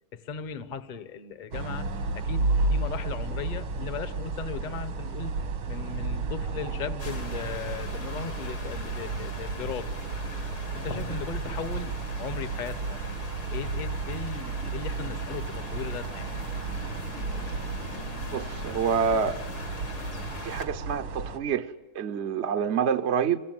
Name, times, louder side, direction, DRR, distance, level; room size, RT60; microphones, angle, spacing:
voice 1, 0.1-9.9 10.7-13.0 13.5-16.3, left 6 dB, 30° left, 0.9 m, -37 dB
sound 1, 1.5-21.4, right 3 dB, 80° right, 2.8 m, -33 dB
sound 2, 7.0-20.7, left 3 dB, 80° left, 3.8 m, -41 dB
voice 2, 18.3-19.4 20.4-23.4, right 7 dB, 50° right, 0.8 m, -27 dB
27.5 x 22.0 x 7.7 m
omnidirectional pair, 2.3 m